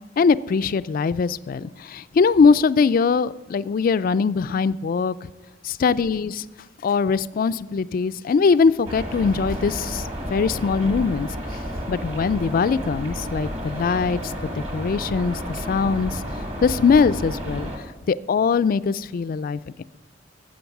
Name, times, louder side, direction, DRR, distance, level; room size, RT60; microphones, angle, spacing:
voice 1, 0.2-5.3 5.6-6.4 6.8-11.3 11.9-16.2 16.6-17.7 18.1-19.8, left 5 dB, 50° left, 16 dB, 0.3 m, -21 dB
sound 1, 8.8-17.8, equal, 35° right, 1.8 m, -31 dB
12.5 x 8.0 x 5.9 m, 1.1 s
head